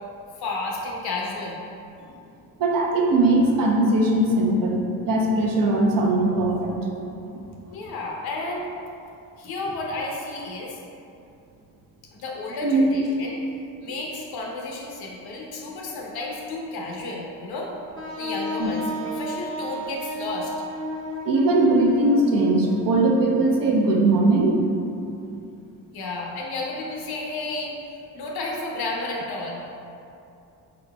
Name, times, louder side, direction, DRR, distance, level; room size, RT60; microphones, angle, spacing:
voice 1, 0.4-1.6 7.7-8.7 9.4-10.8 12.1-13.4 13.8-17.7 18.2-20.5 25.9-27.8 28.1-29.6, left 2 dB, 70° left, -1 dB, 0.8 m, -32 dB
voice 2, 2.6-6.8 12.6-12.9 18.6-18.7 21.3-24.6, right 2 dB, 60° right, -1 dB, 0.7 m, -20 dB
Wind instrument woodwind instrument, 17.9-23.7, left 1 dB, 30° right, 0.8 m, -33 dB
3.9 x 3.9 x 2.2 m, 2.7 s
cardioid pair, 75°, 39 cm